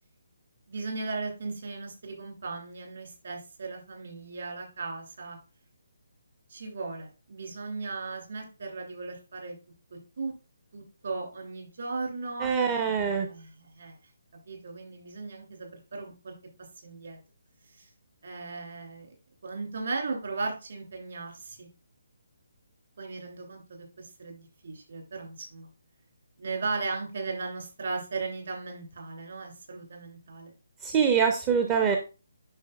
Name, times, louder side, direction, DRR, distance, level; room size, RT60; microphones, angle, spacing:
voice 1, 0.7-5.4 6.5-9.6 10.2-10.3 10.7-14.0 14.5-16.3 16.8-17.2 17.7-17.9 18.2-19.1 19.4-21.7 23.0-25.7 26.4-30.5, right 3 dB, 55° right, 2 dB, 2.8 m, -37 dB
voice 2, 12.4-13.3 30.8-32.0, right 6 dB, 20° right, 4 dB, 0.6 m, -24 dB
8.9 x 6.1 x 2.4 m, 0.32 s
figure-of-eight pair, 140°, 0 cm